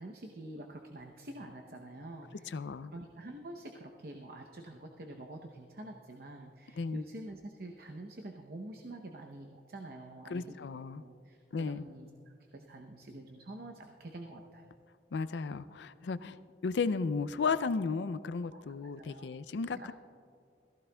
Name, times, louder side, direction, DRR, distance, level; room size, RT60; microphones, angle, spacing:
voice 1, 0.0-2.6 2.9-10.6 11.0-12.1 12.5-14.6 18.5-18.6 19.0-19.4 19.7-19.9, right 1 dB, 55° right, 2 dB, 0.8 m, -47 dB
voice 2, 2.5-2.9 6.8-7.0 10.3-11.0 11.5-11.8 15.1-19.9, left 4 dB, 85° left, 14 dB, 0.4 m, -34 dB
21.0 x 15.0 x 2.3 m, 2.3 s
head